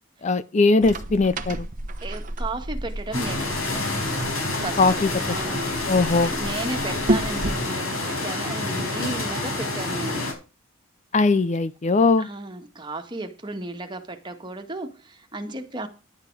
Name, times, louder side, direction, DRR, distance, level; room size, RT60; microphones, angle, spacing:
voice 1, 0.2-1.7 4.8-5.1 5.9-6.3 11.1-12.3, left 3 dB, 35° left, 0.4 m, -20 dB
sound 1, 0.8-7.7, right 1 dB, 40° right, 1.0 m, -32 dB
voice 2, 2.0-3.9 4.6-5.9 6.2-10.2 12.2-15.9, right 2 dB, 20° right, 1.8 m, -34 dB
sound 2, 3.1-10.3, left 2 dB, 80° left, 5.0 m, -28 dB
11.5 x 8.9 x 4.8 m
head